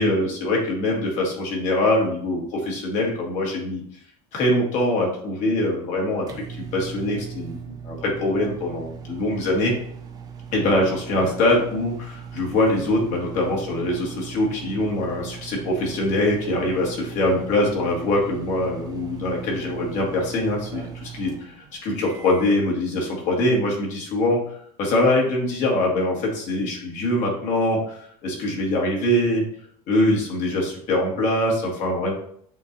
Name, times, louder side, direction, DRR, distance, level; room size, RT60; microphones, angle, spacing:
voice 1, 0.0-3.8 4.3-9.7 10.5-21.3 21.8-29.4 29.9-32.1, left 1 dB, 50° left, -1 dB, 1.7 m, -23 dB
sound 1, 5.8-22.7, right 7 dB, 25° right, 0.6 m, -39 dB
7.4 x 2.7 x 2.6 m, 0.63 s
supercardioid pair, 120°, 16 cm